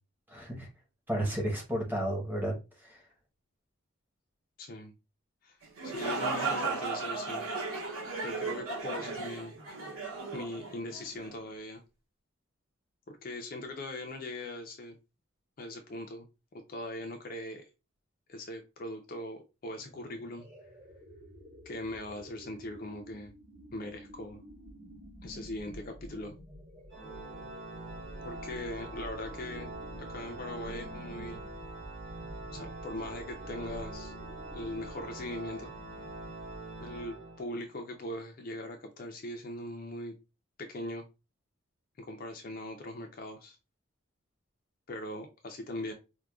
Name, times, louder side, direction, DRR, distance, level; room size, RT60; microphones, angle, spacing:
voice 1, 0.3-0.7 1.1-2.5 2.8-3.0, right 1 dB, 10° right, 0 dB, 0.9 m, -32 dB
voice 2, 4.6-4.9 5.4-5.6 5.8-7.5 8.2-9.5 10.3-11.8 13.1-15.0 15.6-16.3 16.5-17.7 18.3-20.5 21.7-23.3 23.7-24.4 25.2-26.3 28.2-29.7 30.1-31.4 32.5-34.1 34.5-35.7 36.8-40.1 40.6-41.1 42.0-43.6 44.9-45.9, left 1 dB, 40° left, 4 dB, 0.4 m, -40 dB
sound 1, 5.6-11.3, right 3 dB, 90° right, 1.1 m, -35 dB
sound 2, 19.7-37.2, equal, 35° right, 1.2 m, -50 dB
Organ, 26.9-37.8, right 2 dB, 55° right, 1.1 m, -44 dB
4.7 x 2.2 x 2.3 m, 0.28 s
head